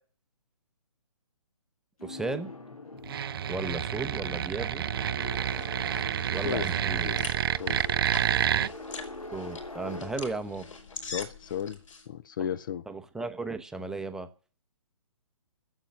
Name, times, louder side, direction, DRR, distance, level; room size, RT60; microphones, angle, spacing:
sound 1, 2.0-12.0, left 2 dB, 80° left, 2.8 m, -44 dB
voice 1, 2.0-2.5 3.5-4.8 6.3-7.1 9.3-10.6 12.9-14.3, right 3 dB, 5° right, 0.8 m, -35 dB
sound 2, 3.0-8.7, right 9 dB, 40° right, 0.6 m, -29 dB
sound 3, 5.0-12.1, left 4 dB, 65° left, 4.3 m, -44 dB
voice 2, 7.0-7.8 11.1-11.8 12.1-12.8, left 9 dB, 35° left, 0.6 m, -34 dB
13.0 x 8.1 x 9.3 m
figure-of-eight pair, 135°, 18 cm